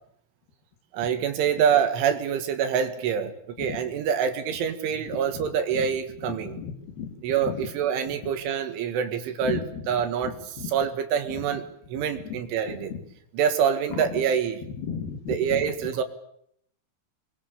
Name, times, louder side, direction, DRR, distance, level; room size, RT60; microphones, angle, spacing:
voice 1, 0.9-3.3 3.6-6.6 7.2-11.6 11.9-12.9 13.3-14.6 15.3-16.0, right 8 dB, 75° right, 7 dB, 4.1 m, -26 dB
voice 2, 6.5-7.1 7.5-7.6 9.4-9.8 10.2-10.7 13.9-14.0 14.8-15.6, left 7 dB, 55° left, 4 dB, 4.0 m, -34 dB
28.5 x 22.5 x 7.0 m, 0.70 s
omnidirectional pair, 5.9 m